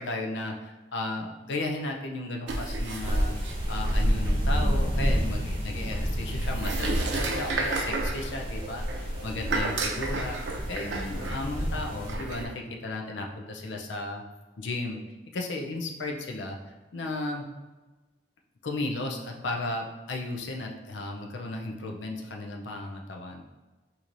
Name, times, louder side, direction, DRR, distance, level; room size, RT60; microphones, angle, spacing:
voice 1, 0.0-3.3 3.7-10.4 10.7-14.2 14.6-15.0 15.3-16.6 16.9-17.5 18.6-23.4, left 2 dB, 80° left, 1 dB, 0.5 m, -34 dB
sound 1, 2.5-12.5, right 1 dB, 85° right, 0.6 m, -30 dB
sound 2, 2.9-12.1, equal, 30° right, 1.0 m, -33 dB
4.5 x 2.8 x 2.5 m, 1.2 s
head